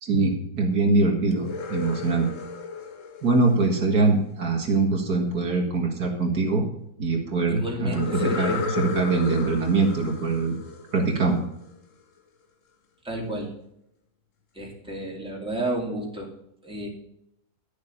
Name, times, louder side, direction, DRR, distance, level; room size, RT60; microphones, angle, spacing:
voice 1, 0.0-2.3 3.2-6.7 7.0-10.5 10.9-11.5, right 3 dB, 70° right, 1 dB, 2.3 m, -23 dB
sound 1, 1.3-4.3 7.9-11.6, left 5 dB, 55° left, 1.3 m, -34 dB
voice 2, 7.5-8.6 13.0-13.5 14.5-16.3 16.6-16.9, right 1 dB, 5° right, -2 dB, 2.5 m, -31 dB
11.5 x 6.9 x 5.5 m, 0.76 s
omnidirectional pair, 1.7 m